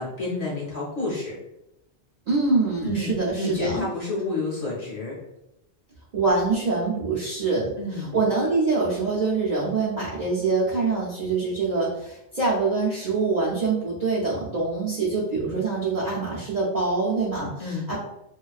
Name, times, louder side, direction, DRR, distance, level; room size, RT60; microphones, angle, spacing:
voice 1, 0.0-1.4 2.8-5.2 7.8-8.2 15.4-15.6 17.4-17.9, left 2 dB, 45° left, -6 dB, 0.6 m, -30 dB
voice 2, 2.3-3.8 6.1-18.0, right 3 dB, 55° right, -6 dB, 0.5 m, -25 dB
2.3 x 2.3 x 2.3 m, 0.86 s
omnidirectional pair, 1.2 m